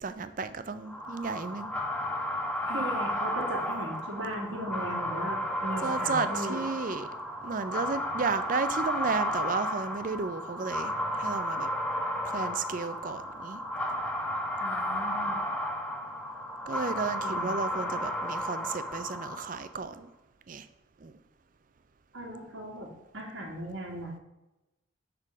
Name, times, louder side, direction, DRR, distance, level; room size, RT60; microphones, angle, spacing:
voice 1, 0.0-1.7 2.7-2.8 5.8-7.1 7.4-11.7 12.2-13.6 16.7-20.1 20.5-20.7 21.0-21.1, right 4 dB, 40° right, 0.5 m, -33 dB
sound 1, 0.8-19.7, equal, 5° left, 0.7 m, -33 dB
voice 2, 2.7-6.6 14.6-15.4 17.2-17.5 22.1-24.2, right 1 dB, 80° right, 2.0 m, -38 dB
6.7 x 3.7 x 6.0 m
head